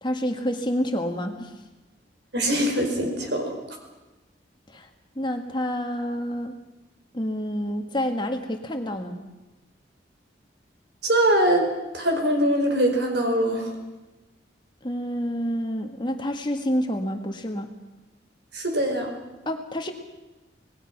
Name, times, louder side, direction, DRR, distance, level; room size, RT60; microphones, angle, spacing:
voice 1, 0.0-1.5 4.7-4.9 5.1-6.5 7.1-9.2 14.8-17.7 19.4-19.9, equal, 25° left, 5 dB, 1.6 m, -28 dB
voice 2, 2.3-3.6 11.0-13.7 18.5-19.1, right 1 dB, 65° right, 3 dB, 4.8 m, -23 dB
26.0 x 19.0 x 6.0 m, 1.1 s
head